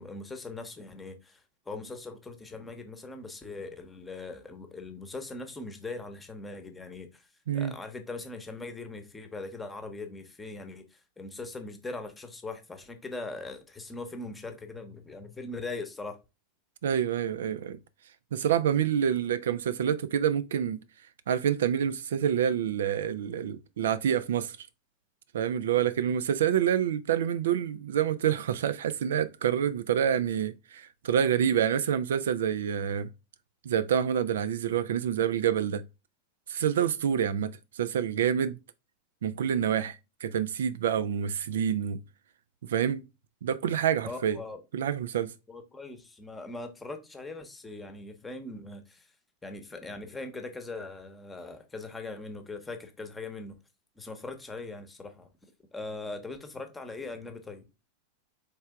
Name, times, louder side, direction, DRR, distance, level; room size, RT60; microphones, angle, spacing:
voice 1, 0.0-7.3 7.5-16.2 44.0-44.6 45.5-49.1 49.4-53.5 54.0-55.3 55.7-57.7, left 3 dB, 10° left, 0.9 m, -40 dB
voice 2, 16.8-17.8 18.3-20.8 21.3-24.6 25.3-33.1 33.6-35.8 36.5-38.6 39.2-40.0 40.2-42.0 42.6-43.0 43.4-44.4 44.7-45.3, right 9 dB, 60° right, 0.3 m, -27 dB
4.4 x 3.3 x 3.4 m
figure-of-eight pair, 90°, 0 cm